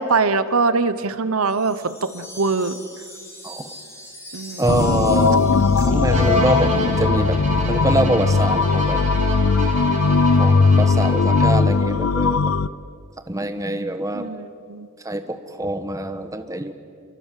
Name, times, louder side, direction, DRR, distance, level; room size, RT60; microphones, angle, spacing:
voice 1, 0.0-2.8 4.3-4.9 5.9-6.0 14.1-14.9, right 4 dB, 75° right, 13 dB, 1.0 m, -23 dB
Wind chime, 1.5-6.9, left 1 dB, 15° left, 5.2 m, -41 dB
voice 2, 4.6-5.4 5.8-7.4 7.7-9.0 10.4-12.5 13.3-14.3 15.0-16.7, right 1 dB, 15° right, 8 dB, 1.3 m, -24 dB
sound 1, 4.7-12.7, left 4 dB, 75° left, 0.6 m, -18 dB
Bowed string instrument, 6.1-11.8, right 1 dB, 35° right, 3.2 m, -29 dB
28.0 x 24.0 x 7.6 m, 2.2 s
head